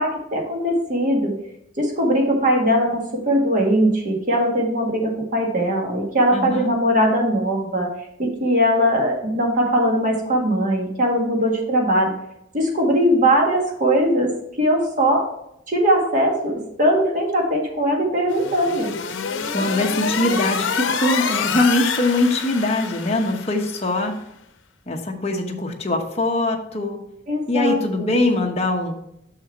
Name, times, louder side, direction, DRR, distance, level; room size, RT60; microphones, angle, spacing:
voice 1, 0.0-1.3 1.8-7.9 8.2-12.1 12.5-14.3 14.6-15.3 15.7-18.9 27.3-28.1, equal, 45° right, 0 dB, 1.8 m, -20 dB
voice 2, 6.3-6.7 19.5-24.1 24.9-27.0 27.5-29.0, left 2 dB, 35° left, 1 dB, 1.0 m, -22 dB
sound 1, 18.3-23.9, left 6 dB, 80° left, 0.7 m, -26 dB
6.4 x 6.3 x 4.2 m, 0.78 s
head